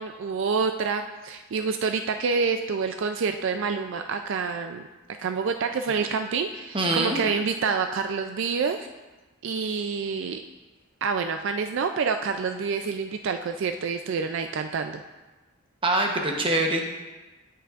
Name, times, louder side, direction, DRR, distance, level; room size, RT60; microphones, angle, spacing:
voice 1, 0.0-4.9 5.2-8.9 9.4-10.4 11.0-15.0, right 5 dB, 60° right, 7 dB, 0.3 m, -27 dB
voice 2, 6.7-7.2 15.8-16.9, right 2 dB, 25° right, 2 dB, 0.9 m, -24 dB
16.5 x 5.8 x 2.4 m, 1.2 s
head